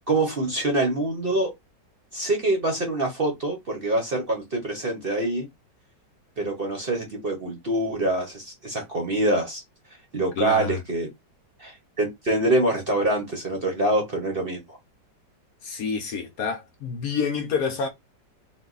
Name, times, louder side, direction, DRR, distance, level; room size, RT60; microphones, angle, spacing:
voice 1, 0.1-1.5 2.1-5.5 6.4-9.6 10.1-11.1 11.6-14.8, right 2 dB, 40° right, 0.9 m, -25 dB
voice 2, 10.4-10.8 15.6-17.9, left 6 dB, 65° left, 1.0 m, -28 dB
4.0 x 2.2 x 3.9 m
omnidirectional pair, 1.9 m